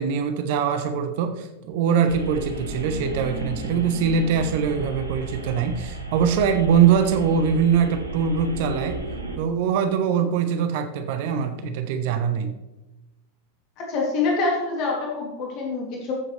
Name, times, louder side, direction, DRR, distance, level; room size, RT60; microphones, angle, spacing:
voice 1, 0.0-8.9 9.4-12.5, right 7 dB, 50° right, 8 dB, 1.0 m, -22 dB
sound 1, 2.1-9.4, right 2 dB, 85° right, 1.5 m, -34 dB
voice 2, 13.9-16.1, left 3 dB, 40° left, -2 dB, 2.7 m, -25 dB
14.0 x 7.9 x 3.3 m, 1.0 s
figure-of-eight pair, 90°, 0 cm